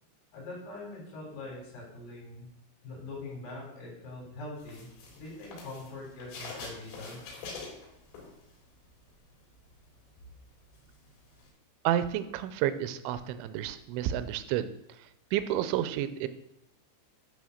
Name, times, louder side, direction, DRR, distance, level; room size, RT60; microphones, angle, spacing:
voice 1, 0.3-2.5 2.8-4.9 5.2-7.4, left 2 dB, 60° left, -3 dB, 5.4 m, -43 dB
sound 1, 4.6-8.8 9.1-11.5, left 4 dB, 90° left, 5.7 m, -45 dB
voice 2, 11.8-14.7 15.3-16.3, right 11 dB, 80° right, 12 dB, 2.8 m, -30 dB
12.0 x 4.2 x 6.4 m, 0.86 s
omnidirectional pair, 5.6 m